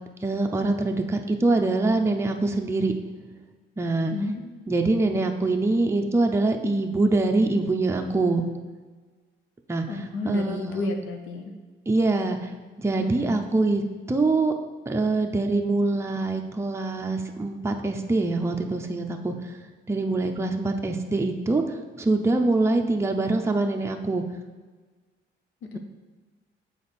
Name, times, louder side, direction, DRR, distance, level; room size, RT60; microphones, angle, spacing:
voice 1, 0.2-2.9 3.8-4.1 4.7-8.4 9.7-11.0 11.9-12.5 12.8-13.8 14.1-14.5 14.9-19.6 19.9-24.2, right 2 dB, 15° right, 3 dB, 0.6 m, -24 dB
voice 2, 4.1-4.8 9.9-11.5 13.0-13.4 25.7-25.8, left 3 dB, 85° left, 4 dB, 0.8 m, -32 dB
6.9 x 4.3 x 4.2 m, 1.4 s
cardioid pair, 90°, 20 cm